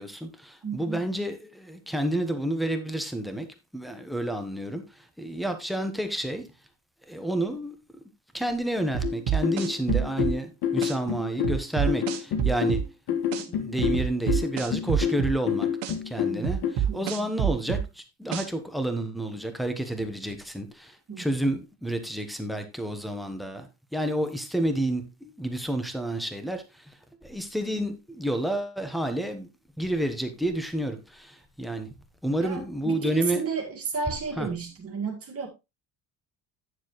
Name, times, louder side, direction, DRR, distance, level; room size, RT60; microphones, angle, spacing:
voice 1, 0.0-3.5 3.7-4.9 5.2-6.5 7.1-7.8 8.3-12.8 13.5-15.7 16.0-26.6 27.2-29.5 29.8-31.9 32.2-33.4 34.4-34.5, right 1 dB, ahead, 1.1 m, -30 dB
voice 2, 0.6-1.0 16.3-17.3 21.1-21.2 32.4-35.5, right 5 dB, 35° right, 2.0 m, -33 dB
sound 1, 8.9-10.4 10.8-10.9 11.4-12.9 13.3-13.4 13.8-15.4 15.8-15.9 16.4-17.9 18.3-18.5, right 8 dB, 80° right, 1.6 m, -27 dB
sound 2, 9.0-16.7, left 9 dB, 60° left, 1.8 m, -28 dB
9.4 x 7.2 x 3.1 m
cardioid pair, 155°, 41 cm